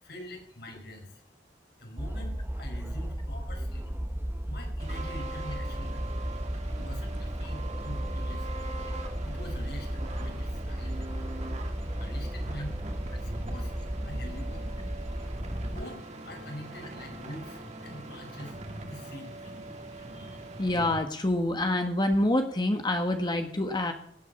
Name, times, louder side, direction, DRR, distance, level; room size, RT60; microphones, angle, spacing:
voice 1, 0.0-1.2 1.8-3.9 4.4-6.0 6.7-8.6 9.2-11.2 12.0-12.8 13.2-13.7 14.0-14.8 15.6-19.5, equal, 65° left, 3 dB, 4.7 m, -45 dB
sound 1, 2.0-15.8, equal, 15° right, 0.9 m, -34 dB
sound 2, 4.8-21.0, right 2 dB, 40° right, 2.7 m, -42 dB
voice 2, 20.6-23.9, left 1 dB, 25° left, 5 dB, 1.5 m, -26 dB
18.0 x 8.6 x 7.1 m, 0.63 s
head